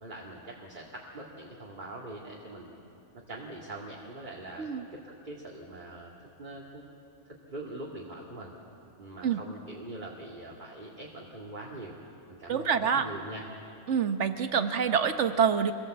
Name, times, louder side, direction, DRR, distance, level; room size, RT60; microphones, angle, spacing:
voice 1, 0.0-2.8 3.3-6.8 7.3-8.5 9.0-11.9 12.3-13.5, right 2 dB, 40° right, -3 dB, 2.3 m, -43 dB
voice 2, 12.5-13.1 13.9-15.7, right 7 dB, 75° right, 9 dB, 1.4 m, -26 dB
25.0 x 17.0 x 7.8 m, 2.6 s
omnidirectional pair, 1.2 m